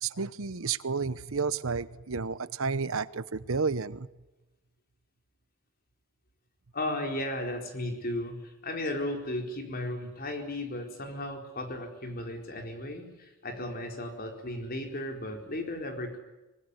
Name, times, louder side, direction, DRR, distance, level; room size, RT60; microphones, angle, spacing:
voice 1, 0.0-4.1, right 5 dB, 80° right, 16 dB, 0.9 m, -31 dB
voice 2, 6.7-16.2, left 1 dB, 45° left, 4 dB, 4.4 m, -35 dB
24.5 x 20.5 x 9.8 m, 1.1 s
head